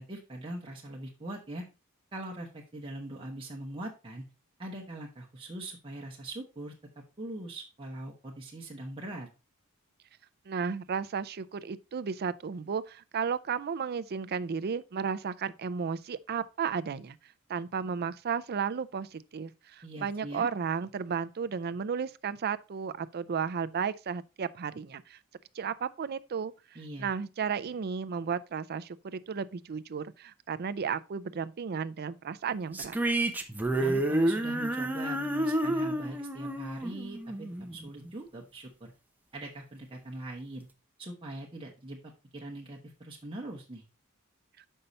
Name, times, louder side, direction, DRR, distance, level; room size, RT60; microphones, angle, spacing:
voice 1, 0.0-1.6 2.1-4.2 4.6-6.7 7.2-9.3 19.8-20.5 26.7-27.1 33.8-38.9 39.3-40.7 41.0-42.0 42.3-43.8, right 1 dB, 25° right, 1.1 m, -41 dB
voice 2, 10.5-17.2 17.5-25.2 25.6-26.5 27.0-33.0, right 6 dB, 45° right, 0.4 m, -33 dB
sound 1, 32.7-38.1, right 1 dB, 10° right, 0.7 m, -30 dB
6.7 x 5.5 x 4.0 m
head